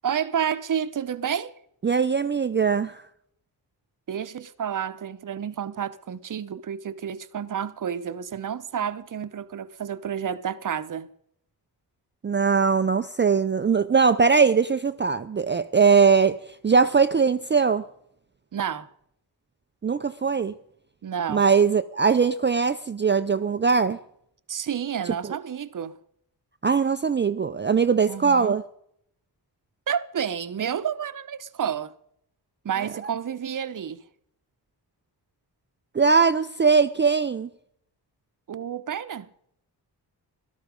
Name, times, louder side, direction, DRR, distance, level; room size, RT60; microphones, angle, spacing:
voice 1, 0.0-1.5 4.1-11.1 18.5-18.9 21.0-21.5 24.5-25.9 28.1-28.6 29.9-31.9 32.6-34.0 38.5-39.3, right 8 dB, 50° right, 0.8 m, -30 dB
voice 2, 1.8-3.0 12.2-17.8 19.8-20.5 21.3-24.0 26.6-28.6 35.9-37.5, right 5 dB, 25° right, 0.5 m, -21 dB
17.5 x 13.0 x 5.2 m
wide cardioid pair, 145°, 41 cm